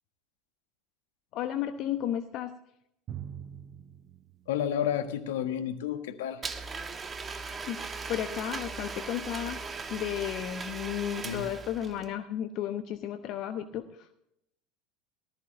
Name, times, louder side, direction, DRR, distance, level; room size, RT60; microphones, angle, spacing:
voice 1, 1.3-2.6 7.7-9.6 9.9-14.1, left 11 dB, 55° left, 8 dB, 0.9 m, -33 dB
Drum, 3.1-5.5, right 9 dB, 45° right, 0.7 m, -45 dB
voice 2, 4.5-6.4 11.2-11.5, left 9 dB, 75° left, 8 dB, 1.4 m, -31 dB
Domestic sounds home sounds, 6.4-12.1, right 4 dB, 25° right, 1.5 m, -38 dB
19.0 x 14.0 x 2.7 m, 0.77 s
hypercardioid pair, 75°, 0 cm